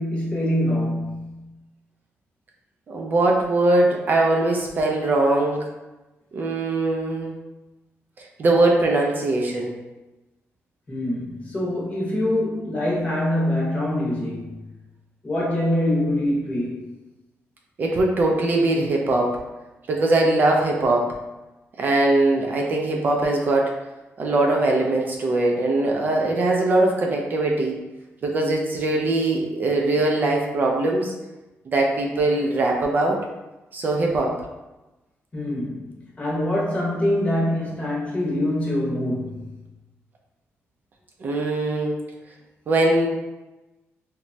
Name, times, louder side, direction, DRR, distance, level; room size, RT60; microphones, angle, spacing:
voice 1, 0.0-1.5 10.9-14.6 15.2-16.8 35.3-39.5, left 1 dB, 25° left, -5 dB, 0.8 m, -24 dB
voice 2, 2.9-5.6 6.3-7.3 8.4-9.7 17.8-19.4 19.9-21.1 21.8-23.7 24.2-27.8 28.2-31.1 31.7-33.3 33.7-34.4 41.2-41.9 42.7-43.1, right 2 dB, 40° right, 0 dB, 0.3 m, -21 dB
3.0 x 2.1 x 2.6 m, 1.0 s
wide cardioid pair, 155°, 5 cm